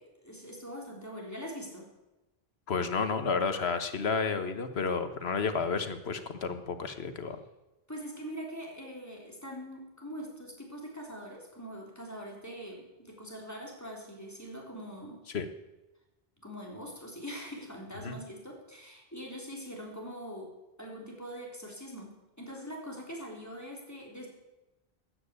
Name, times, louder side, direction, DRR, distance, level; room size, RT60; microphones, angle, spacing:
voice 1, 0.0-1.9 7.9-15.2 16.4-20.5 20.8-24.3, equal, 15° left, -2 dB, 3.7 m, -43 dB
voice 2, 2.7-7.4 15.3-15.5 18.0-18.2, left 5 dB, 85° left, 9 dB, 1.4 m, -31 dB
13.5 x 9.4 x 8.3 m, 1.0 s
omnidirectional pair, 1.0 m